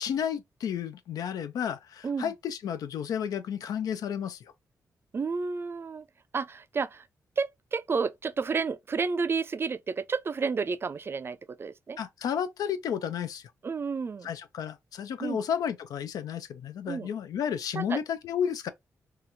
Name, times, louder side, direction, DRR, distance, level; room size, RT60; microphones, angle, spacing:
voice 1, 0.0-4.4 12.0-13.5 14.2-18.7, left 8 dB, 80° left, 0.4 m, -32 dB
voice 2, 5.1-6.1 6.3-7.1 7.4-12.0 13.6-14.3 15.2-15.4 16.9-17.1 17.7-18.0, right 5 dB, 40° right, 0.3 m, -31 dB
2.8 x 2.4 x 2.6 m
cardioid pair, 70°, 6 cm